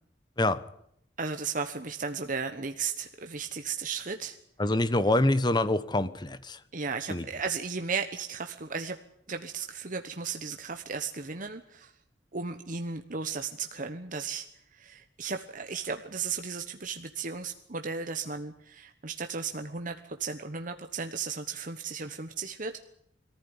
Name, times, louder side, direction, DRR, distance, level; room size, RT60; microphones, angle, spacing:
voice 1, 1.2-4.4 6.7-9.0 9.3-11.9 12.3-22.8, right 5 dB, 45° right, 1.2 m, -35 dB
voice 2, 4.6-6.6 7.1-7.2, left 1 dB, 25° left, 1.1 m, -25 dB
22.0 x 15.0 x 9.9 m
head